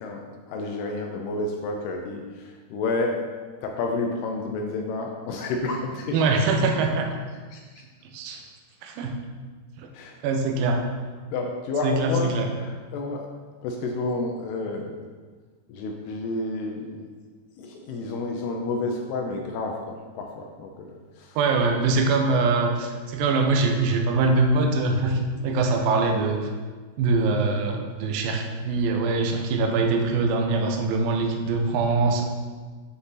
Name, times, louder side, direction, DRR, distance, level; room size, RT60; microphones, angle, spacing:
voice 1, 0.0-3.2 3.6-6.2 7.5-7.8 9.9-10.2 11.3-13.3 13.6-15.1 15.7-17.0 17.6-21.4, left 3 dB, 80° left, 1 dB, 2.6 m, -30 dB
voice 2, 6.1-7.1 8.0-8.4 8.8-9.1 9.8-9.9 10.2-10.9 11.8-12.5 21.4-26.5 27.0-32.2, right 3 dB, 75° right, 3 dB, 2.2 m, -23 dB
8.3 x 5.9 x 4.0 m, 1.5 s
omnidirectional pair, 5.0 m